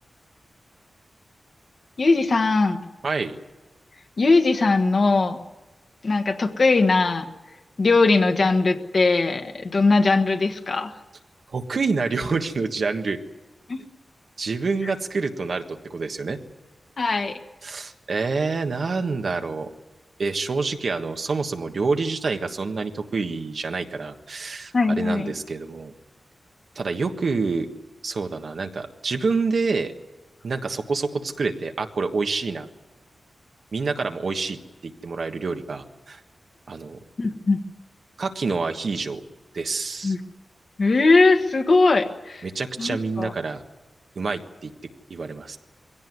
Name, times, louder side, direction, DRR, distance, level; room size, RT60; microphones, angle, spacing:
voice 1, 2.0-2.8 4.2-5.4 6.0-7.3 7.8-10.9 13.7-13.8 17.0-17.4 24.7-25.3 37.2-37.6 40.0-40.2 40.8-42.4 42.8-43.3, left 3 dB, 40° left, 6 dB, 1.5 m, -20 dB
voice 2, 3.0-3.3 11.5-13.2 14.4-16.4 17.6-19.7 20.2-25.9 26.7-27.7 28.0-29.9 30.4-32.7 33.7-34.6 34.8-36.2 36.7-37.0 38.2-39.2 39.5-40.1 42.4-43.6 44.1-44.7 45.1-45.6, right 4 dB, 55° right, 5 dB, 1.5 m, -27 dB
22.5 x 17.0 x 9.6 m, 1.1 s
wide cardioid pair, 180°, 0 cm